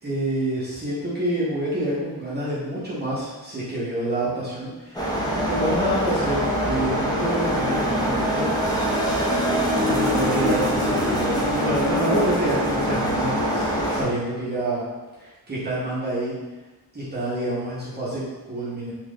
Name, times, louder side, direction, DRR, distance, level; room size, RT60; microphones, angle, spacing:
voice 1, 0.0-8.5 9.8-14.8 15.2-16.3 16.9-18.2 18.5-18.9, right 1 dB, 25° right, -9 dB, 0.8 m, -27 dB
sound 1, 4.9-14.0, equal, 10° left, 0.4 m, -23 dB
2.9 x 2.4 x 3.5 m, 1.2 s
wide cardioid pair, 150°, 39 cm